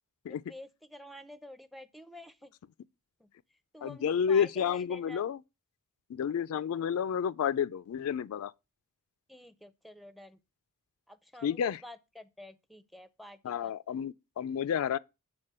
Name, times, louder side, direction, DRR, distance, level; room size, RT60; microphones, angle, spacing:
voice 1, 0.3-2.5 3.2-3.3 3.7-5.2 9.3-10.4 11.1-13.7, left 1 dB, ahead, 0.5 m, -49 dB
voice 2, 3.8-5.4 6.1-8.5 11.4-11.8 13.4-15.0, left 8 dB, 70° left, 0.3 m, -30 dB
7.5 x 3.7 x 6.6 m
head